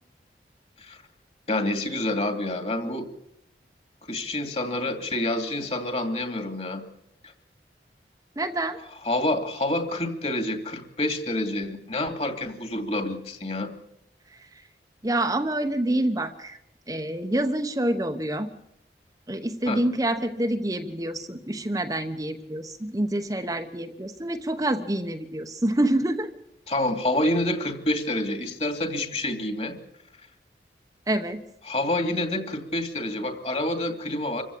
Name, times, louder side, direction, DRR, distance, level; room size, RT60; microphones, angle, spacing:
voice 1, 1.5-3.1 4.1-6.8 7.2-7.3 9.0-13.7 19.7-19.8 26.7-29.8 31.7-34.4, left 1 dB, 35° left, 7 dB, 2.6 m, -28 dB
voice 2, 8.4-8.8 14.3-14.6 15.0-16.6 16.9-18.5 19.3-26.3 31.1-31.4, right 1 dB, 20° right, 5 dB, 1.0 m, -27 dB
26.0 x 15.5 x 8.5 m, 0.82 s
head